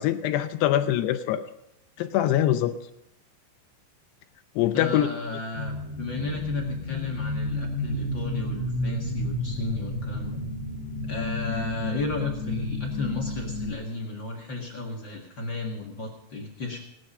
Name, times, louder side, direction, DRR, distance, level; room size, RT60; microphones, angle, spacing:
voice 1, 0.0-1.4 2.0-2.8 4.6-5.1, left 12 dB, 80° left, 9 dB, 2.6 m, -23 dB
voice 2, 4.7-10.4 11.1-16.8, left 3 dB, 50° left, 0 dB, 1.3 m, -33 dB
sound 1, 5.5-13.7, left 1 dB, 40° right, 6.6 m, -31 dB
17.5 x 12.5 x 5.5 m, 0.81 s
omnidirectional pair, 5.1 m